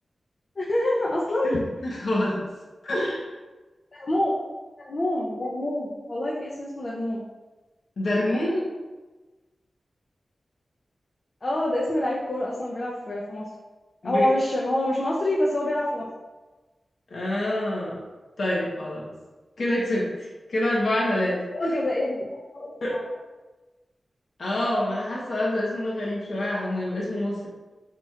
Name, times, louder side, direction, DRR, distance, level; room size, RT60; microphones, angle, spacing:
voice 1, 0.6-1.6 3.9-4.4 4.8-7.2 11.4-13.4 14.0-16.0 21.5-23.0 26.4-26.5, left 1 dB, 40° left, -5 dB, 0.6 m, -26 dB
voice 2, 1.4-2.4 2.8-3.3 8.0-8.7 14.0-14.3 17.1-18.0 18.4-19.1 19.6-21.8 22.8-23.0 24.4-27.5, left 1 dB, 70° left, -5 dB, 1.0 m, -27 dB
5.9 x 2.9 x 2.4 m, 1.2 s
wide cardioid pair, 120°, 0 cm